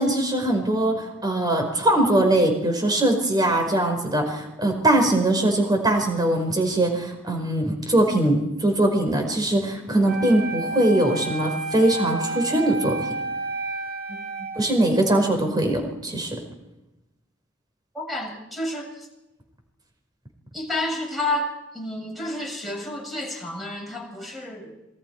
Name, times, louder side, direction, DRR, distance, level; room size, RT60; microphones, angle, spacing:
voice 1, 0.0-13.1 14.5-16.4, right 1 dB, 20° right, 4 dB, 5.1 m, -21 dB
Wind instrument woodwind instrument, 10.0-15.2, right 2 dB, 55° right, 5.4 m, -31 dB
voice 2, 14.1-14.5 17.9-19.1 20.5-24.7, left 1 dB, ahead, 0 dB, 7.4 m, -30 dB
27.0 x 22.5 x 4.8 m, 0.96 s
head